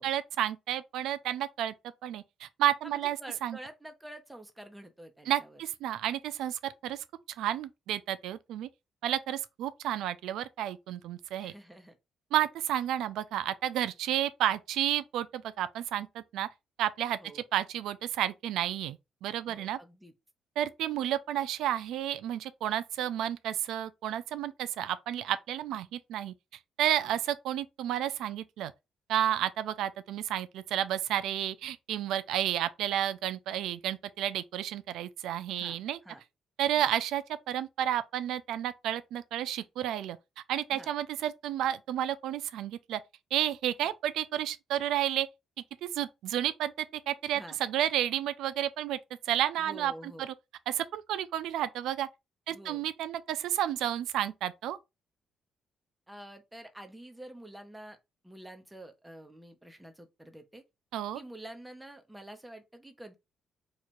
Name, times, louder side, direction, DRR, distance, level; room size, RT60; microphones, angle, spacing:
voice 1, 0.0-1.7 2.0-3.6 5.3-7.0 7.4-8.7 9.0-11.5 12.3-16.5 16.8-19.0 19.2-19.8 20.6-26.3 26.8-28.7 29.1-36.0 36.6-40.2 40.5-43.0 43.3-45.3 45.8-46.7 47.1-49.0 49.3-50.3 50.7-52.1 52.5-54.8 60.9-61.2, right 11 dB, 85° right, 0.4 m, -31 dB
voice 2, 2.8-5.6 11.4-12.0 17.2-17.4 19.5-20.1 27.0-27.2 32.4-32.5 35.5-35.8 36.0-36.2 36.7-36.9 40.7-40.9 43.8-43.9 47.3-47.6 49.6-50.3 52.5-52.8 56.1-58.0 58.2-60.6 61.1-63.2, right 1 dB, 10° right, 0.8 m, -48 dB
3.1 x 2.4 x 4.3 m
cardioid pair, 90°, 0 cm